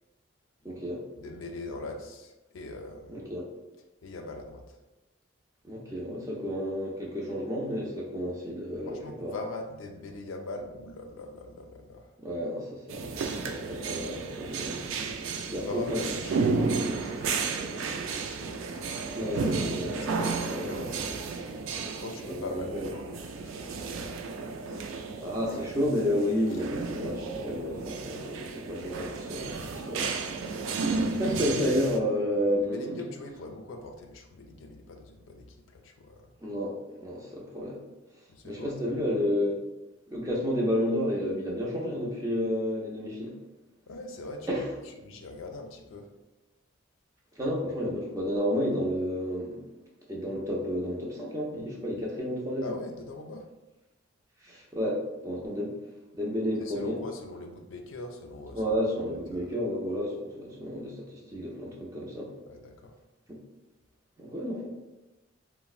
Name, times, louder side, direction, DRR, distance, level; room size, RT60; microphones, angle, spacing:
voice 1, 0.6-1.0 3.1-3.4 5.6-9.3 12.2-14.8 15.5-16.0 19.1-20.8 22.2-22.8 25.2-30.1 31.2-33.0 36.4-37.8 38.4-39.6 40.1-43.4 44.5-44.7 47.4-49.7 50.1-52.7 54.4-55.7 56.1-57.0 58.5-62.3 64.2-64.7, equal, 15° right, -3 dB, 0.5 m, -31 dB
voice 2, 1.1-3.2 4.0-4.8 8.9-12.1 15.3-19.3 20.0-21.3 22.0-24.2 24.6-24.9 25.2-25.3 30.0-30.1 32.6-36.3 38.3-39.0 43.9-44.6 45.0-46.1 52.6-53.5 56.6-58.7 59.3-59.6 62.5-63.0, left 2 dB, 80° left, 4 dB, 0.4 m, -42 dB
sound 1, 12.9-32.0, right 4 dB, 85° right, 0.3 m, -33 dB
4.1 x 2.0 x 2.3 m, 1.0 s
head